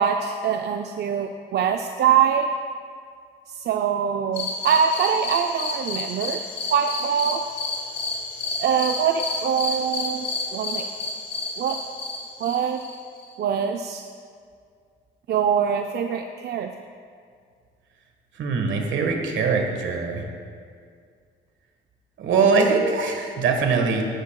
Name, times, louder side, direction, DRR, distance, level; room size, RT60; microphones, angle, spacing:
voice 1, 0.0-2.5 3.5-6.4 6.7-7.4 8.6-10.3 10.5-10.9 11.6-11.8 12.4-12.8 13.4-14.0 15.3-16.7 22.9-23.0, right 7 dB, 55° right, 5 dB, 0.5 m, -23 dB
sound 1, 4.3-13.3, left 3 dB, 60° left, 2.5 m, -30 dB
voice 2, 18.3-20.2 22.2-24.0, right 4 dB, 70° right, 3 dB, 1.5 m, -22 dB
14.5 x 10.5 x 2.3 m, 2.2 s
cardioid pair, 90°, 20 cm